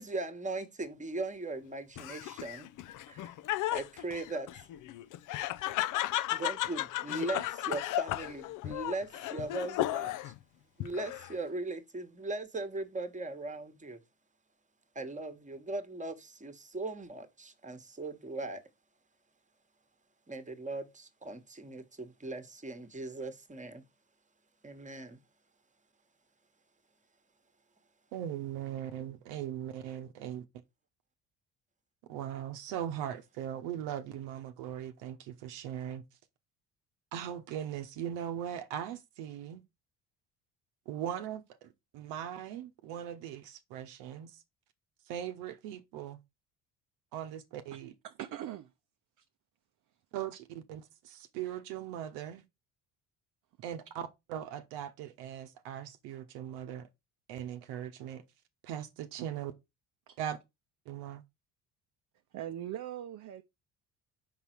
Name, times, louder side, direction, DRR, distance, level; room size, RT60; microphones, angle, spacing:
voice 1, 0.0-2.7 3.1-3.3 3.7-4.5 6.3-10.3 10.8-14.0 14.9-18.6 20.3-23.8 24.6-25.2, right 2 dB, 15° right, 1.3 m, -39 dB
Laughter, 2.0-10.4 10.8-11.5, left 15 dB, 50° left, 0.5 m, -35 dB
voice 2, 28.1-30.4 32.1-36.0 37.1-39.6 40.9-44.4 45.1-46.2 47.1-47.9 50.1-52.4 53.6-56.9 57.3-58.2 58.6-59.5 60.2-60.4 60.9-61.2, right 10 dB, 75° right, 0.9 m, -39 dB
voice 3, 48.0-48.7 49.2-49.3 60.1-60.2 62.3-63.4, right 11 dB, 45° right, 0.6 m, -41 dB
5.5 x 4.0 x 4.5 m
hypercardioid pair, 60°, 42 cm